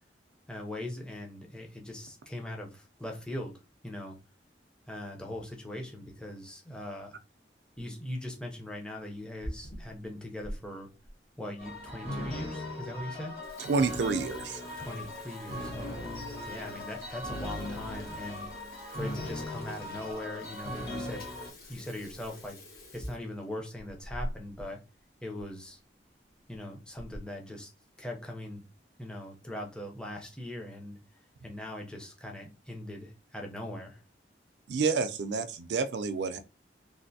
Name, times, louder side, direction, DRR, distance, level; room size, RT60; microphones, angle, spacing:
voice 1, 0.5-4.2 4.9-7.1 7.8-10.9 11.4-13.3 14.8-16.0 16.5-18.5 18.9-22.6 22.9-24.8 25.2-25.8 26.5-27.7 28.0-28.6 29.0-31.0 31.4-34.0, left 1 dB, 5° left, 0.5 m, -40 dB
Water tap faucet / Sink (filling or washing), 9.4-10.6 11.0-11.1 11.9-12.0 12.3-12.4 12.8-13.0 13.3-24.7 25.0-25.1 25.4-25.5 26.3-26.6 27.0-27.4, equal, 55° left, 1.0 m, -46 dB
sound 1, 11.6-21.5, left 1 dB, 75° left, 1.6 m, -39 dB
voice 2, 13.6-14.6 34.7-36.4, right 4 dB, 80° right, 0.4 m, -29 dB
3.2 x 2.5 x 2.6 m
head